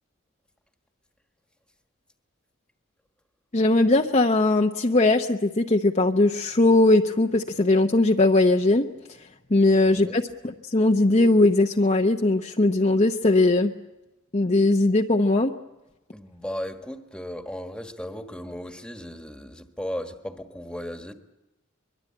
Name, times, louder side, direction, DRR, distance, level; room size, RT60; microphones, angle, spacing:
voice 1, 3.5-8.9 9.5-13.7 14.3-15.5, left 2 dB, 35° left, 0.8 m, -20 dB
voice 2, 9.8-10.2 16.1-21.1, equal, 5° left, 1.5 m, -36 dB
23.5 x 22.5 x 8.7 m
head